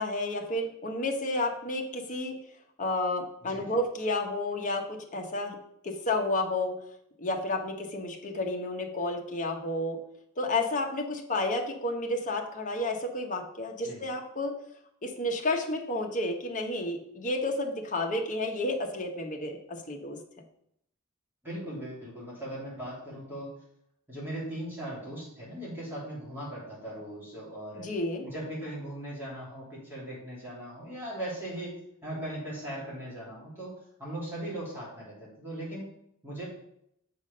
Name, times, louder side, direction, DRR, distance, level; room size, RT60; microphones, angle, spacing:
voice 1, 0.0-2.4 2.8-5.6 5.8-6.8 7.2-10.0 10.4-14.5 15.0-20.2 27.8-28.3, left 2 dB, 40° left, 2 dB, 1.1 m, -31 dB
voice 2, 21.4-23.5 24.1-27.9 28.2-33.7 34.0-36.5, right 1 dB, 10° right, -8 dB, 3.0 m, -39 dB
7.5 x 4.9 x 5.3 m, 0.74 s
head